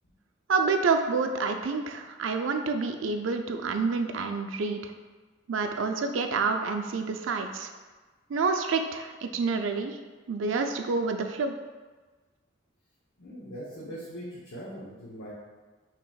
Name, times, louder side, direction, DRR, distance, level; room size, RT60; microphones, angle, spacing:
voice 1, 0.5-4.9 5.5-7.7 8.3-10.0 10.3-11.5, right 4 dB, 85° right, 5 dB, 0.4 m, -28 dB
voice 2, 13.2-15.3, equal, 85° left, -7 dB, 0.8 m, -41 dB
5.8 x 2.9 x 2.3 m, 1.3 s
head